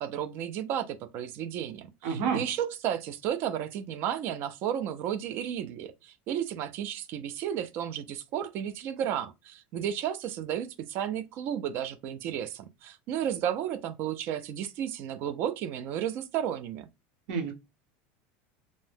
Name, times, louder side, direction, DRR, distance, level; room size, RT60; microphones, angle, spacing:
voice 1, 0.0-16.9, right 10 dB, 40° right, 0.3 m, -33 dB
voice 2, 2.0-2.4 17.3-17.5, right 6 dB, 60° right, 0.7 m, -29 dB
2.6 x 2.1 x 3.3 m
cardioid pair, 170°, 6 cm